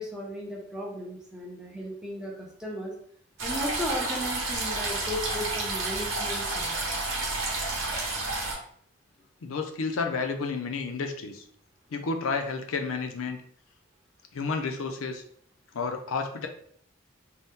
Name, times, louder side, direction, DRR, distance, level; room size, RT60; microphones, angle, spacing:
voice 1, 0.0-2.9 3.4-6.8, equal, 5° right, -3 dB, 0.5 m, -35 dB
sound 1, 3.4-8.5, right 2 dB, 75° right, 0.9 m, -30 dB
voice 2, 9.4-11.4 11.9-13.4 14.3-15.2 15.7-16.5, left 4 dB, 85° left, 6 dB, 0.5 m, -31 dB
2.7 x 2.1 x 3.5 m, 0.62 s
head